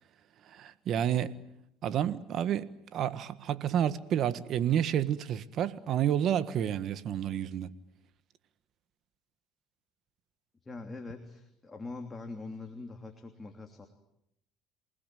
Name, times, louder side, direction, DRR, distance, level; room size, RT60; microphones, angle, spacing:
voice 1, 0.5-1.4 1.8-7.7, right 10 dB, 55° right, 1.5 m, -30 dB
voice 2, 10.6-13.9, left 3 dB, 15° left, 3.1 m, -43 dB
28.5 x 19.5 x 9.2 m
supercardioid pair, 100°, 0 cm